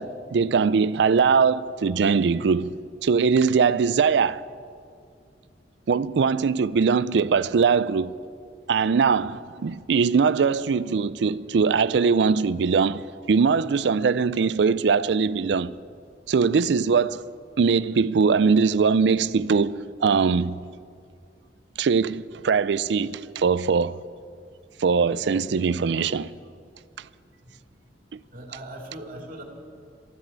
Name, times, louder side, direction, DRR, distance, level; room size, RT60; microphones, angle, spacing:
voice 1, 0.0-2.7 3.0-4.4 5.9-8.1 8.7-15.7 16.3-17.3 17.6-20.6 21.8-24.0 24.8-26.3 28.1-28.2, right 5 dB, 70° right, 0.4 m, -21 dB
voice 2, 28.3-29.4, right 1 dB, 50° right, 2.3 m, -39 dB
13.0 x 12.0 x 8.1 m
head